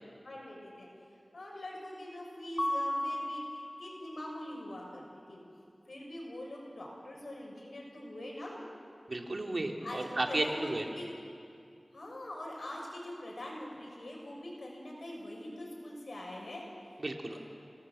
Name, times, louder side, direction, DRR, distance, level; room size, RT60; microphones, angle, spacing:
voice 1, 0.2-0.9 1.3-5.4 5.9-8.6 9.8-11.1 11.9-17.0 17.3-17.4, left 1 dB, 80° left, -1 dB, 6.3 m, -43 dB
Mallet percussion, 2.6-4.4, left 1 dB, 15° left, 0.5 m, -35 dB
voice 2, 9.1-10.8 17.0-17.4, right 2 dB, 65° right, 2 dB, 2.5 m, -33 dB
26.5 x 19.0 x 7.7 m, 2.4 s
wide cardioid pair, 40°, 0 cm